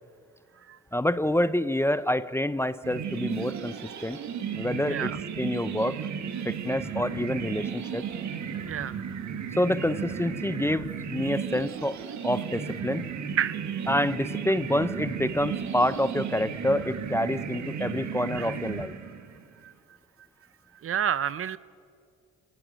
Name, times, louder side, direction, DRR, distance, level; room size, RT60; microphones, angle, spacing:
voice 1, 0.9-3.7 4.0-4.2 4.6-5.1 5.4-6.0 6.4-8.0 9.6-12.0 12.2-13.1 13.9-18.9, left 1 dB, 10° left, 14 dB, 0.6 m, -27 dB
sound 1, 2.8-19.4, right 7 dB, 65° right, 1.8 m, -34 dB
voice 2, 4.8-5.2 6.4-6.5 8.7-9.0 13.4-13.7 18.3-18.5 19.6-19.7 20.7-21.6, right 9 dB, 45° right, 16 dB, 0.7 m, -30 dB
27.5 x 17.5 x 8.8 m, 2.3 s
cardioid pair, 90°, 30 cm